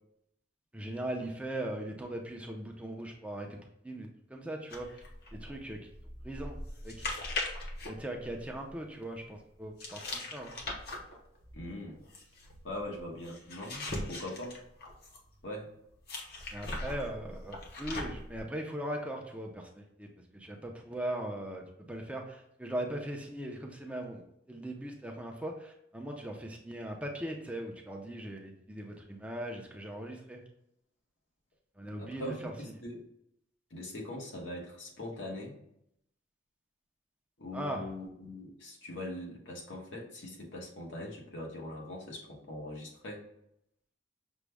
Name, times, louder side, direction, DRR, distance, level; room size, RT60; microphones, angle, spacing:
voice 1, 0.7-5.0 5.3-5.9 6.2-7.0 7.9-10.6 16.5-20.1 20.3-24.2 24.5-30.4 31.8-32.5 37.5-37.8, right 1 dB, 5° right, 1 dB, 0.5 m, -39 dB
sound 1, 4.7-8.8 9.8-15.3 16.1-18.4, left 2 dB, 55° left, 0.9 m, -40 dB
voice 2, 11.5-12.0 12.6-14.6 15.4-15.7 32.0-33.0 33.7-35.6 37.4-43.2, left 1 dB, 85° left, -2 dB, 1.2 m, -41 dB
6.1 x 2.2 x 3.4 m, 0.76 s
head